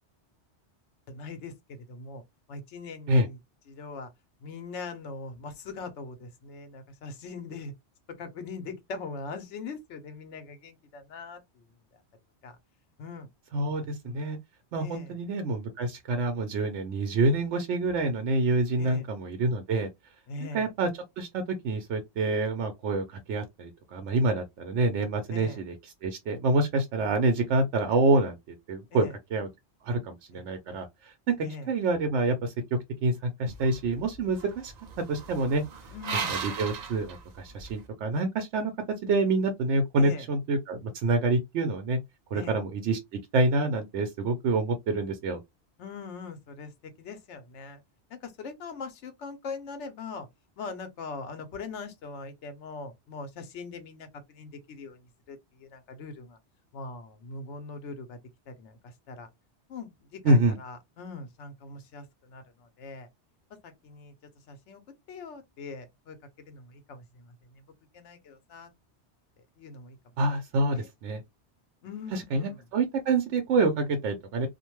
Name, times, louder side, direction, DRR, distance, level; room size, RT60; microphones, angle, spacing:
voice 1, 1.1-2.2 2.5-3.4 3.7-4.1 4.4-7.7 8.2-11.6 11.9-12.0 12.4-12.6 13.0-13.3 13.8-14.2 14.8-15.2 18.8-19.1 20.3-20.7 25.3-25.6 28.9-29.2 30.3-30.4 31.4-31.7 35.9-36.4 40.0-40.3 42.3-42.6 45.8-47.8 48.1-50.3 50.6-56.4 56.7-58.2 58.5-59.3 59.7-63.1 63.6-64.1 64.5-64.8 65.1-66.2 66.5-67.6 67.9-68.7 69.6-70.0 70.7-70.9 71.8-72.6, left 4 dB, 90° left, 1.0 m, -41 dB
voice 2, 13.5-14.4 14.7-19.9 20.5-20.9 21.2-25.7 26.0-28.4 28.7-29.1 29.3-29.5 29.8-31.3 31.7-34.7 35.1-35.6 36.3-38.7 39.0-42.0 42.3-43.0 43.3-45.4 60.2-60.6 70.2-71.2 72.1-74.5, right 2 dB, 85° right, 0.9 m, -27 dB
sound 1, 33.5-37.8, right 5 dB, 60° right, 0.4 m, -37 dB
2.5 x 2.2 x 2.9 m
omnidirectional pair, 1.2 m